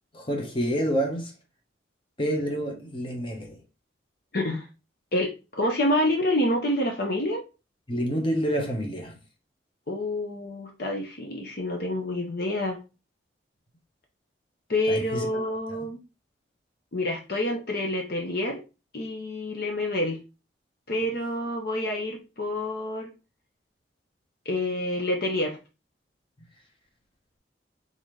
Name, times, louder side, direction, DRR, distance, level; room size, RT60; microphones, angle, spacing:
voice 1, 0.1-1.3 2.2-3.6 7.9-9.2 14.9-15.3 15.7-15.8, equal, 30° left, 1.1 m, -28 dB
voice 2, 4.3-4.7 5.1-7.4 9.9-12.8 14.7-16.0 16.9-18.6 18.9-20.2 20.9-23.1 24.5-25.6, left 1 dB, 55° left, 0.8 m, -27 dB
4.0 x 3.9 x 3.2 m
head